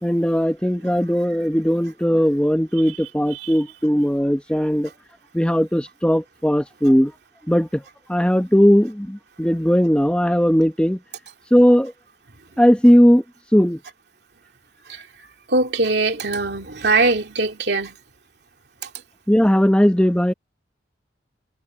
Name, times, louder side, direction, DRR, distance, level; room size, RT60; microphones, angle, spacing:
voice 1, 0.0-4.9 5.3-7.1 7.5-7.8 8.1-11.0 11.5-11.9 12.6-13.2 13.5-13.8 19.3-20.3, equal, 5° left, 1.0 m, -18 dB
voice 2, 15.5-18.0, right 3 dB, 65° right, 2.9 m, -21 dB
head